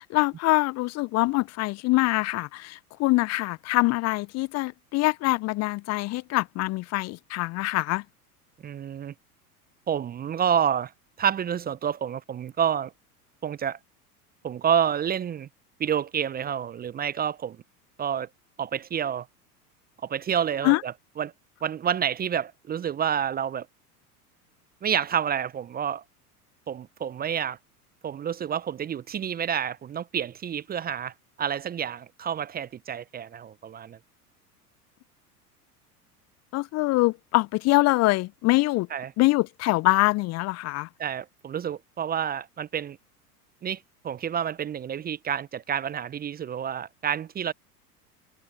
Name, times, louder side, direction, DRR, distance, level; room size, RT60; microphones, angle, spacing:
voice 1, 0.0-8.0 20.6-20.8 36.5-38.9 39.2-40.9, left 21 dB, 35° left, 0.8 m, -24 dB
voice 2, 8.6-9.1 9.9-10.9 11.2-12.9 13.4-13.8 14.4-15.5 15.8-17.6 18.0-18.3 18.6-19.3 20.0-21.3 21.6-23.7 24.8-26.0 26.7-27.6 28.0-31.1 31.4-34.0 38.9-39.1 41.0-43.0 43.6-47.5, right 8 dB, 20° right, 0.8 m, -29 dB
figure-of-eight pair, 80°, 46 cm